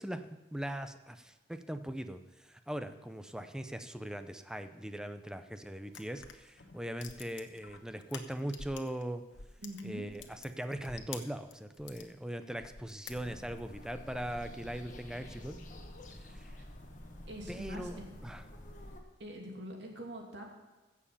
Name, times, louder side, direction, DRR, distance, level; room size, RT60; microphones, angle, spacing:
voice 1, 0.0-9.2 9.8-10.1 10.6-15.6 16.3-16.5 17.5-18.4, right 1 dB, 5° right, 9 dB, 0.6 m, -40 dB
sound 1, 5.9-9.0 9.3-12.1 12.6-13.7, left 6 dB, 85° left, 1.1 m, -49 dB
voice 2, 9.6-10.1 17.3-18.2 19.2-20.4, equal, 70° right, 0 dB, 2.6 m, -44 dB
sound 2, 13.1-19.0, left 1 dB, 45° left, 1.5 m, -48 dB
15.5 x 7.3 x 5.6 m, 1.2 s
head